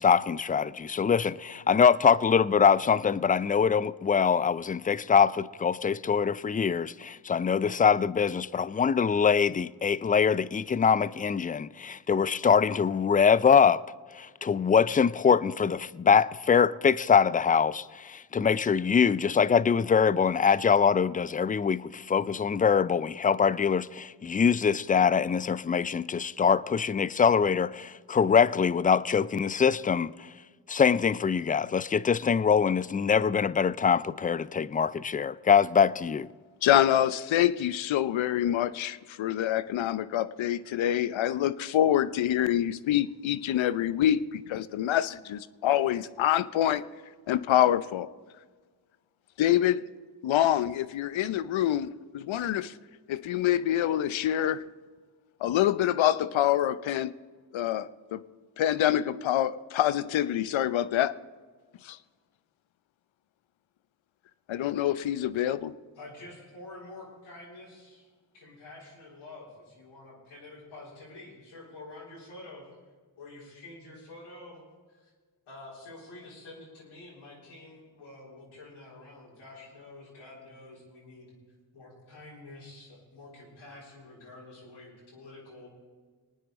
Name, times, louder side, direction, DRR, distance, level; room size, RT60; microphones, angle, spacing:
voice 1, 0.0-13.8 14.1-30.3 30.7-36.3, left 6 dB, 20° left, 0.3 m, -23 dB
voice 2, 36.6-46.8 47.3-48.1 49.4-49.8 50.2-52.7 53.1-54.7 55.4-57.1 57.5-58.2 58.6-61.1 61.8-62.0 64.5-65.7, left 11 dB, 70° left, 0.6 m, -26 dB
voice 3, 66.0-68.1 68.3-72.6 73.2-74.6 74.9-75.1 75.5-81.3 81.7-85.7, left 2 dB, 90° left, 4.0 m, -48 dB
20.5 x 9.4 x 4.0 m
supercardioid pair, 40°, 48 cm